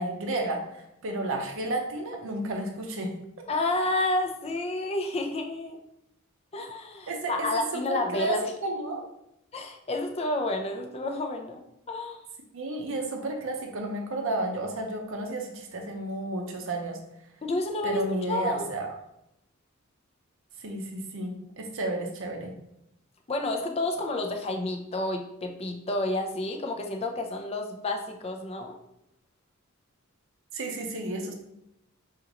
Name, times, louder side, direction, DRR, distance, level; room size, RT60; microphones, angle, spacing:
voice 1, 0.0-3.1 7.1-7.5 7.7-8.4 8.6-9.0 12.5-17.0 17.8-18.9 20.6-22.5 30.5-31.3, right 2 dB, 60° right, 2 dB, 0.6 m, -32 dB
voice 2, 3.5-5.8 6.5-8.4 9.5-12.2 17.4-18.7 23.3-28.8, left 2 dB, 30° left, 4 dB, 0.4 m, -30 dB
5.2 x 2.4 x 2.9 m, 0.81 s
head